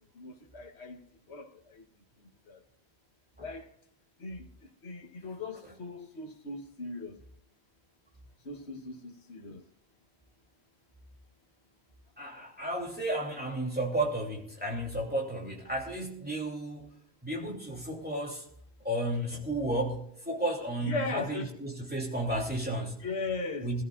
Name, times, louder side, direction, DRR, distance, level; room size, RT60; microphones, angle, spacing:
voice 1, 0.1-1.0 1.3-1.8 2.2-2.6 3.4-3.7 4.2-4.5 4.8-7.2 8.4-9.6 20.8-21.6 22.3-22.4 23.0-23.7, left 3 dB, 85° left, 1.6 m, -38 dB
voice 2, 12.2-16.9 17.2-18.4 18.8-23.0 23.6-23.8, right 1 dB, 10° right, 3.0 m, -33 dB
22.0 x 13.5 x 2.5 m
omnidirectional pair, 1.1 m